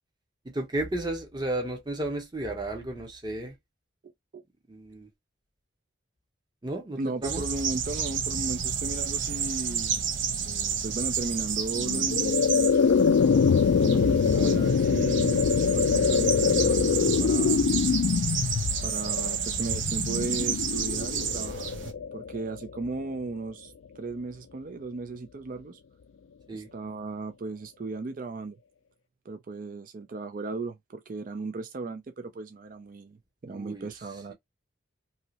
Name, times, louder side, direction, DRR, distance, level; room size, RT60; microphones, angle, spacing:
voice 1, 0.5-3.5 4.7-5.1 6.6-7.4 14.3-14.6 26.5-26.7 33.5-33.9, right 1 dB, 20° right, 0.8 m, -33 dB
voice 2, 7.0-12.8 13.8-17.7 18.8-21.7 22.1-25.8 26.5-28.6 29.3-33.2 33.4-34.3, right 3 dB, 40° right, 0.3 m, -36 dB
sound 1, 7.2-21.9, right 7 dB, 70° right, 0.7 m, -31 dB
sound 2, 11.8-22.9, left 6 dB, 80° left, 0.3 m, -24 dB
2.9 x 2.7 x 2.8 m
head